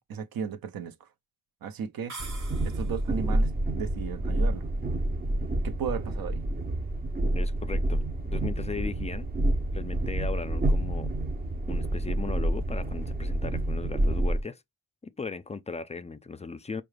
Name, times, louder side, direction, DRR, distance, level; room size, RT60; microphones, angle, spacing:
voice 1, 0.1-0.9 1.6-2.1 2.6-4.7 5.6-6.4, right 7 dB, 75° right, 0.7 m, -35 dB
sound 1, 2.1-3.2, right 3 dB, 55° right, 1.1 m, -43 dB
Train, 2.2-14.4, right 1 dB, 25° right, 0.6 m, -28 dB
voice 2, 7.3-9.3 9.7-11.1 11.7-14.6 15.0-16.8, left 4 dB, 20° left, 0.3 m, -37 dB
4.7 x 2.3 x 3.3 m
cardioid pair, 70°, 36 cm